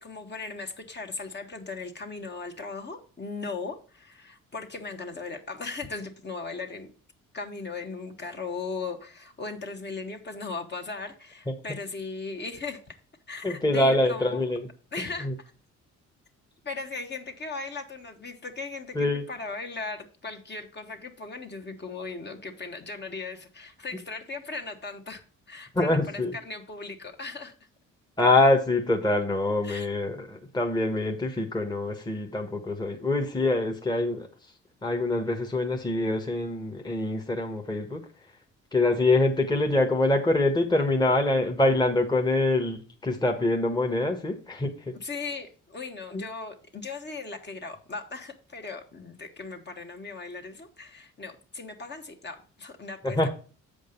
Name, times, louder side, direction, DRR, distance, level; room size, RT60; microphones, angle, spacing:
voice 1, 0.0-6.9 7.3-12.9 13.3-14.4 14.9-15.3 16.6-25.2 25.5-27.5 29.6-29.9 45.0-53.3, left 4 dB, 35° left, 4 dB, 1.6 m, -38 dB
voice 2, 11.5-11.8 13.4-14.7 15.0-15.3 18.9-19.2 25.7-26.3 28.2-34.3 34.8-38.0 38.7-45.0 46.1-46.3 53.0-53.3, left 2 dB, 15° left, 3 dB, 1.4 m, -25 dB
7.9 x 5.2 x 5.2 m, 0.38 s
cardioid pair, 90°, 30 cm